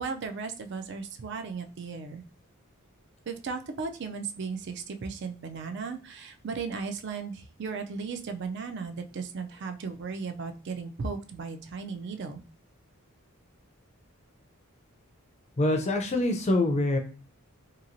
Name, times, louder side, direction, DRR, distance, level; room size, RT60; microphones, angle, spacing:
voice 1, 0.0-2.2 3.3-12.4, right 5 dB, 55° right, 7 dB, 0.4 m, -36 dB
voice 2, 15.6-17.0, left 2 dB, 30° left, 4 dB, 0.4 m, -25 dB
2.8 x 2.7 x 2.6 m, 0.36 s
head